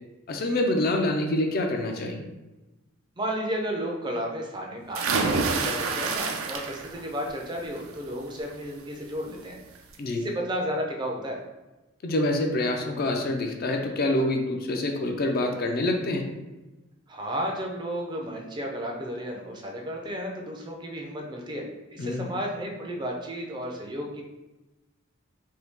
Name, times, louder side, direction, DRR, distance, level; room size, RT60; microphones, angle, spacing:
voice 1, 0.3-2.2 10.0-10.2 12.0-16.3 22.0-22.3, left 1 dB, 45° left, 3 dB, 0.4 m, -26 dB
voice 2, 3.2-9.6 10.2-11.4 17.1-21.7 21.9-24.2, equal, 20° right, 0 dB, 0.4 m, -33 dB
Splash Jumping G, 4.9-7.0 7.4-7.9 9.3-9.4 9.7-9.8, right 4 dB, 90° right, 0.4 m, -27 dB
2.7 x 2.7 x 3.5 m, 1.1 s
head